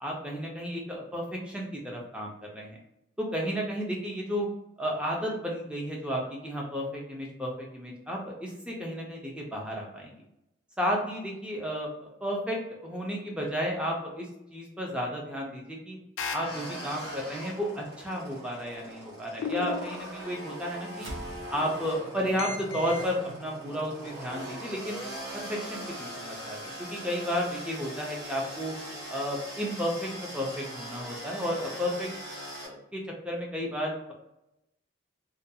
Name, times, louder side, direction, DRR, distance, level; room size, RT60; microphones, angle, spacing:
voice 1, 0.0-2.8 3.2-4.5 4.8-10.2 10.8-16.0 16.3-21.1 21.5-25.0 25.3-28.7 29.1-32.1 32.6-34.1, equal, 5° right, -1 dB, 0.4 m, -33 dB
sound 1, 16.2-17.2 19.4-20.6 22.4-23.1, left 3 dB, 85° left, 0.4 m, -36 dB
sound 2, 16.3-32.7, right 1 dB, 60° right, 1.3 m, -41 dB
sound 3, 20.9-25.6, right 1 dB, 85° right, 0.6 m, -46 dB
2.4 x 2.2 x 2.7 m, 0.88 s
head